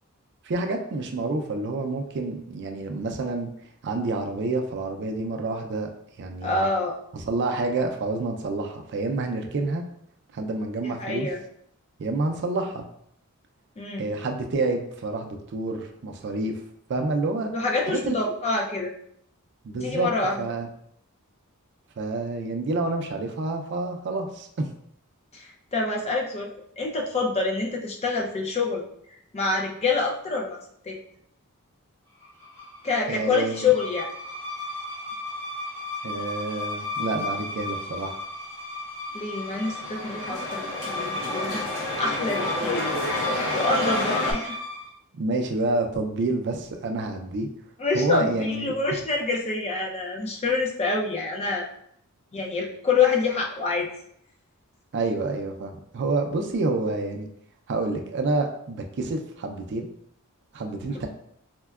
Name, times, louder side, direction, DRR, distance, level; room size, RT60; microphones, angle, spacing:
voice 1, 0.4-3.5 3.8-5.9 6.2-6.6 7.1-9.8 10.3-11.3 12.0-12.9 14.0-16.6 16.9-17.5 17.9-18.1 19.6-20.1 20.4-20.7 22.0-24.7 33.1-33.7 36.0-38.2 45.1-47.5 47.9-48.7 54.9-57.3 57.7-59.9 60.5-61.1, right 3 dB, 55° right, 4 dB, 0.4 m, -28 dB
voice 2, 6.4-7.0 10.8-11.4 13.8-14.1 17.5-18.9 19.7-20.4 25.3-26.5 26.8-28.8 29.3-30.6 30.8-31.0 32.8-34.1 39.1-42.9 43.5-44.6 47.8-51.7 52.3-53.9 60.9-61.1, left 4 dB, 30° left, 0 dB, 0.5 m, -26 dB
sound 1, 32.2-44.9, left 2 dB, 10° left, 1.0 m, -34 dB
sound 2, 39.4-44.3, left 1 dB, 70° left, 0.8 m, -29 dB
4.3 x 2.1 x 2.3 m, 0.70 s
head